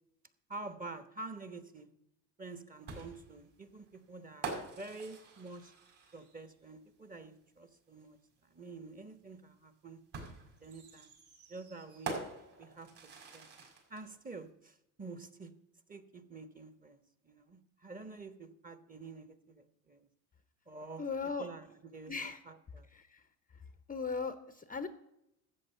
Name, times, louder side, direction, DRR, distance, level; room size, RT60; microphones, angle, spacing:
voice 1, 0.5-1.9 2.4-5.7 6.1-10.0 10.6-11.1 11.5-12.2 12.6-13.6 13.9-15.5 15.9-20.1 20.7-22.9, right 3 dB, 20° right, 11 dB, 1.2 m, -48 dB
sound 1, 2.9-6.5 8.0-8.1 10.1-14.0, right 4 dB, 60° right, 5.3 m, -45 dB
voice 2, 21.0-21.5 22.1-22.4 22.9-23.2 23.9-24.9, left 5 dB, 20° left, 11 dB, 0.8 m, -37 dB
13.0 x 8.2 x 5.6 m, 0.82 s
hypercardioid pair, 80°, 46 cm